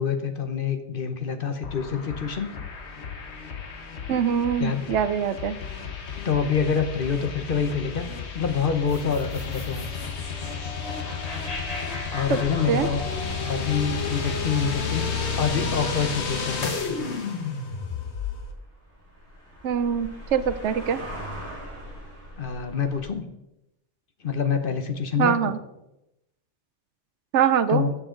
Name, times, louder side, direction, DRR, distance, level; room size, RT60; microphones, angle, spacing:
voice 1, 0.0-2.5 4.6-4.8 6.2-9.9 12.1-13.0 13.4-17.1 22.4-23.2 24.2-25.5 27.7-27.9, left 6 dB, 50° left, 8 dB, 1.1 m, -26 dB
sound 1, 1.6-18.5, left 5 dB, 70° left, 1.4 m, -32 dB
voice 2, 4.1-5.6 12.3-12.4 12.7-12.9 19.6-21.0 25.2-25.6 27.3-27.8, right 8 dB, 80° right, 13 dB, 1.0 m, -23 dB
sound 2, 8.9-15.2, left 2 dB, 35° left, 2.2 m, -39 dB
sound 3, 9.4-23.0, equal, 10° right, 5.0 m, -44 dB
14.0 x 7.7 x 3.8 m, 0.89 s
omnidirectional pair, 1.2 m